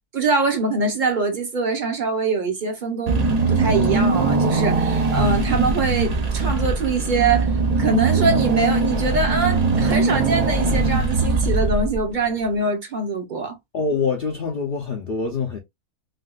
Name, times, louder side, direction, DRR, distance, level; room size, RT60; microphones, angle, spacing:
voice 1, 0.1-13.6, right 3 dB, 40° right, 0.8 m, -23 dB
Car / Engine, 3.1-12.2, right 3 dB, 70° right, 0.3 m, -21 dB
voice 2, 13.7-15.6, left 4 dB, 60° left, 0.6 m, -25 dB
3.5 x 2.4 x 2.3 m
omnidirectional pair, 1.6 m